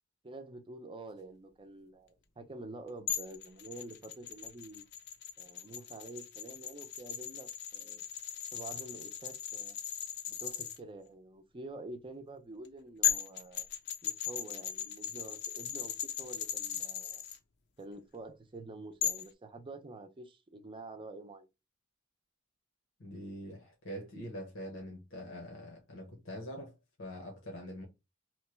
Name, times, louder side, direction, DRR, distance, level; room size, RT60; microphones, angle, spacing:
voice 1, 0.2-4.8 5.4-8.0 8.5-9.8 10.4-13.7 14.0-17.2 17.8-21.5, right 2 dB, 25° right, 0.6 m, -48 dB
sound 1, 3.1-10.8 12.6-12.7 13.0-17.4 19.0-19.3, left 10 dB, 60° left, 0.5 m, -37 dB
voice 2, 23.0-27.8, equal, 90° left, 1.0 m, -44 dB
3.1 x 2.2 x 3.0 m
head